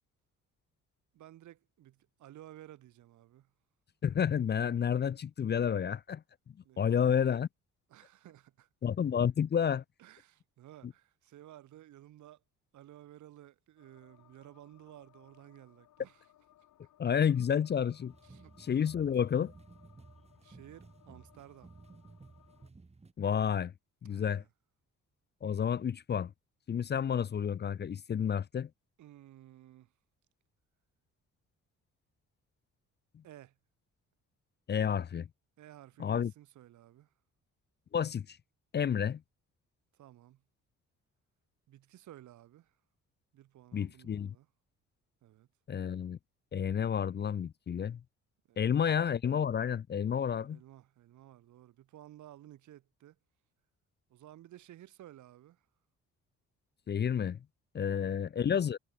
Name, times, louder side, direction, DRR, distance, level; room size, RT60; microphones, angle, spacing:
voice 1, 1.1-3.5 6.6-7.2 7.9-8.7 10.0-12.4 12.7-16.3 18.2-18.5 20.4-21.7 24.0-24.5 29.0-29.9 33.2-33.5 35.6-37.1 39.9-40.4 41.7-42.8 43.3-44.5 45.2-45.5 48.5-48.9 50.3-53.2 54.1-55.7 57.8-58.2, right 13 dB, 75° right, 1.7 m, -55 dB
voice 2, 4.0-6.2 6.8-7.5 8.8-9.8 17.0-18.1 18.6-19.5 23.2-23.7 24.0-24.4 25.4-26.3 26.7-28.7 34.7-35.3 36.0-36.3 37.9-38.4 38.7-39.2 43.7-44.3 45.7-46.2 46.5-48.0 48.6-50.6 56.9-57.4 57.7-58.8, left 8 dB, 35° left, 0.6 m, -30 dB
sound 1, 13.8-22.7, left 12 dB, 75° left, 5.9 m, -65 dB
sound 2, 18.1-23.1, right 3 dB, 20° right, 2.3 m, -56 dB
cardioid pair, 90°, 30 cm